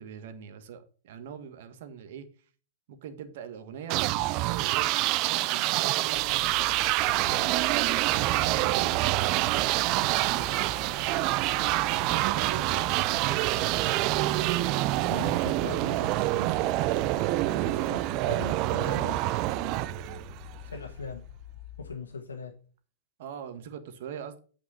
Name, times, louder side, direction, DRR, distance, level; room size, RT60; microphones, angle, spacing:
voice 1, 0.0-2.3 2.9-7.0 8.1-10.8 12.1-17.1 23.2-24.4, right 8 dB, 60° right, 1.5 m, -43 dB
Voices Inside My Dead, 3.9-20.6, right 18 dB, 45° right, 0.4 m, -26 dB
sound 1, 6.1-22.0, left 12 dB, 65° left, 0.7 m, -46 dB
voice 2, 15.1-16.5 16.9-19.2 20.6-21.2 21.8-22.5, left 4 dB, 90° left, 1.3 m, -40 dB
8.4 x 5.3 x 5.7 m
hypercardioid pair, 105°, 0 cm